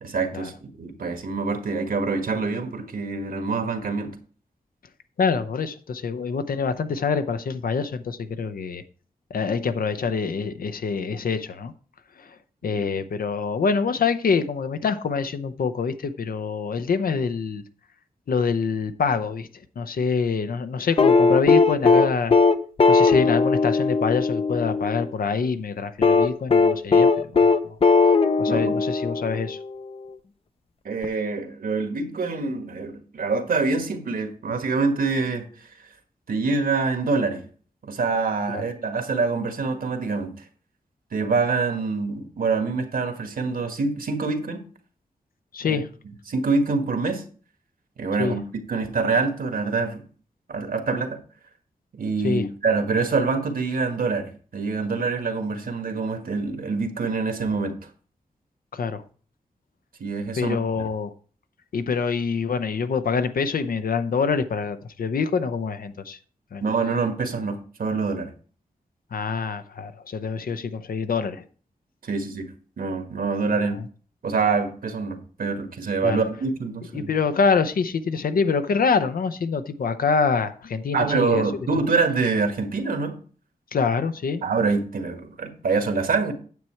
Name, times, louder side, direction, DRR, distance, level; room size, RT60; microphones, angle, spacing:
voice 1, 0.0-4.2 12.8-12.9 28.5-28.7 30.8-35.9 36.3-37.4 37.8-40.4 41.1-44.6 45.6-45.8 46.3-47.2 48.0-50.0 50.5-51.2 51.9-57.8 60.0-60.8 66.6-68.3 72.0-72.5 72.8-73.8 74.2-77.1 80.9-83.2 84.4-86.3, right 4 dB, 75° right, 1.5 m, -25 dB
voice 2, 5.2-8.8 9.3-11.7 12.6-17.6 18.3-19.5 19.8-22.4 22.9-27.1 27.6-27.8 28.4-29.6 38.5-38.6 45.5-45.9 48.2-48.4 52.2-52.4 58.7-59.0 60.4-61.1 61.7-66.2 66.5-66.6 69.1-71.4 76.0-76.2 76.9-81.4 83.7-84.4, left 5 dB, 75° left, 0.8 m, -25 dB
sound 1, 21.0-25.1 26.0-29.6 31.0-31.1, left 4 dB, 40° left, 0.6 m, -18 dB
9.4 x 7.1 x 4.5 m
wide cardioid pair, 140°, 15 cm